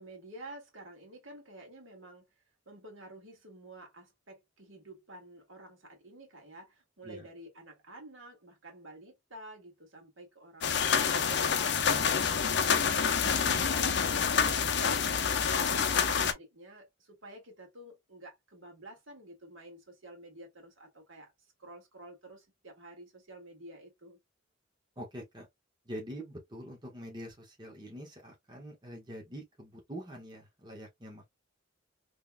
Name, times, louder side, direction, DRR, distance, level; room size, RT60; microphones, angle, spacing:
voice 1, 0.0-2.2 2.7-15.3 15.6-21.3 21.6-24.2, right 1 dB, 80° right, 2.0 m, -50 dB
sound 1, 10.6-16.3, left 6 dB, 60° left, 0.6 m, -27 dB
voice 2, 13.3-13.6 25.0-25.5 25.8-31.3, equal, 20° right, 1.3 m, -45 dB
3.7 x 3.4 x 2.2 m
head